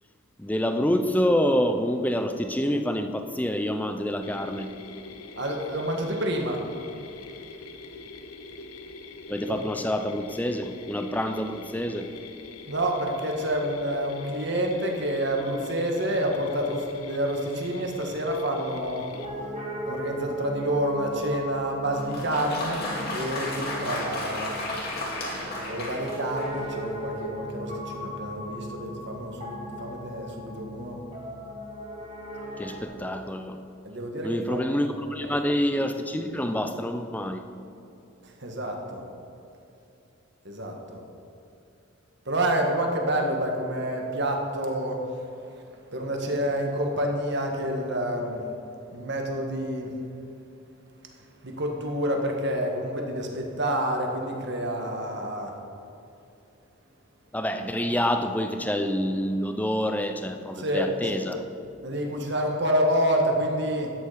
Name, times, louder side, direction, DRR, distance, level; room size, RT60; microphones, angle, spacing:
voice 1, 0.4-4.8 9.3-12.1 32.6-33.6 34.2-37.5 57.3-61.4, equal, 5° left, 7 dB, 0.5 m, -27 dB
Mechanisms, 4.2-19.3, left 3 dB, 90° left, 0.9 m, -44 dB
voice 2, 5.4-6.6 9.5-9.6 12.7-19.1 19.8-24.5 25.7-31.0 33.8-34.9 35.2-35.3 38.2-39.0 40.4-41.0 42.2-45.0 45.9-48.4 48.9-49.9 51.4-55.5 60.6-61.3 61.8-63.9, equal, 50° right, 2 dB, 1.6 m, -28 dB
Piano, 19.1-32.8, equal, 30° right, 2.2 m, -38 dB
Applause, 21.9-26.7, left 1 dB, 45° left, 2.2 m, -33 dB
13.0 x 9.5 x 5.0 m, 2.8 s
head